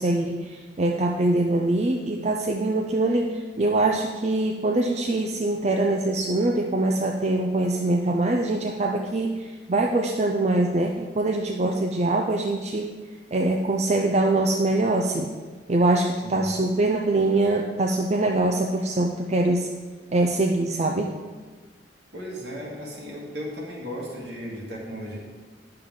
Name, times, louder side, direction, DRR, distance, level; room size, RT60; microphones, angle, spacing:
voice 1, 0.0-12.9 13.3-15.3 15.7-19.7 20.1-21.1, right 2 dB, 40° right, 2 dB, 0.5 m, -23 dB
voice 2, 22.1-25.2, equal, 70° right, -3 dB, 2.1 m, -35 dB
9.5 x 6.7 x 3.8 m, 1.4 s
head